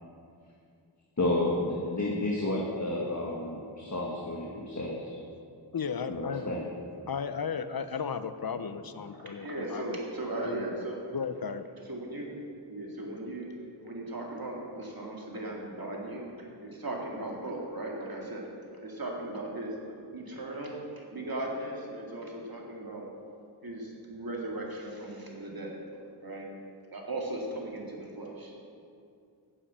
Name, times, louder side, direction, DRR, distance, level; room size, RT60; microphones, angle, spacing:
voice 1, 1.2-5.2 6.1-6.7, left 2 dB, 40° left, -2 dB, 1.4 m, -31 dB
voice 2, 5.7-6.5 7.1-10.0 10.4-10.9 11.1-11.7, left 6 dB, 55° left, 11 dB, 0.7 m, -35 dB
voice 3, 9.0-11.0 11.9-12.3 12.7-13.5 13.8-18.5 18.8-19.7 20.1-23.1 23.6-25.8 26.2-26.5 26.9-28.5, right 2 dB, 55° right, -1 dB, 2.2 m, -37 dB
9.9 x 7.2 x 7.4 m, 2.4 s
wide cardioid pair, 65°, 43 cm